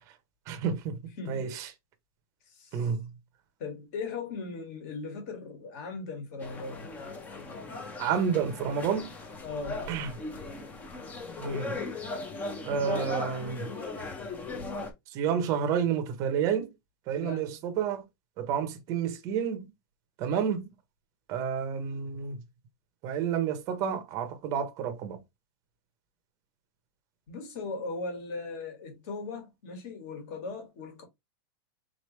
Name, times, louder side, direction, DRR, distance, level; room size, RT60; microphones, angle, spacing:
voice 1, 0.5-1.0 1.3-1.7 2.7-3.1 8.0-9.1 9.9-10.1 11.4-11.8 12.6-13.7 15.1-16.7 17.1-18.0 18.4-19.7 20.2-20.7 21.3-22.4 23.0-25.2, right 7 dB, 25° right, 0.7 m, -30 dB
voice 2, 1.2-1.5 2.5-2.9 3.6-6.9 9.4-9.9 17.2-17.6 27.3-31.0, left 4 dB, 40° left, 1.6 m, -38 dB
sound 1, 6.4-14.9, left 3 dB, 10° left, 0.6 m, -38 dB
4.0 x 3.1 x 3.1 m
supercardioid pair, 175°, 13 cm